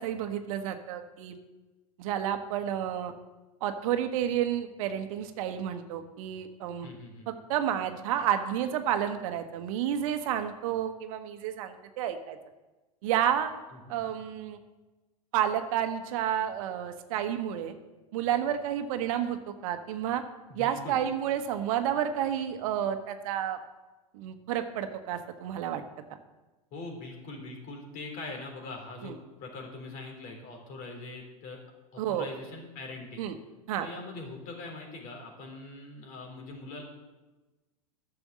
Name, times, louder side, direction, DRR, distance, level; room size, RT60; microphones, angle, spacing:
voice 1, 0.0-1.4 2.0-3.1 3.6-6.9 7.3-12.4 13.0-13.5 13.9-14.6 15.3-17.7 18.1-20.2 20.5-23.6 24.1-25.8 29.0-29.1 32.0-32.3 33.2-33.3 33.7-33.9, right 10 dB, 65° right, 7 dB, 1.1 m, -30 dB
voice 2, 6.8-7.4 13.8-14.1 20.5-21.0 26.7-31.6 31.9-33.2 33.8-36.8, left 2 dB, 45° left, 2 dB, 3.7 m, -42 dB
11.0 x 7.0 x 7.5 m, 1.1 s
hypercardioid pair, 100°, 19 cm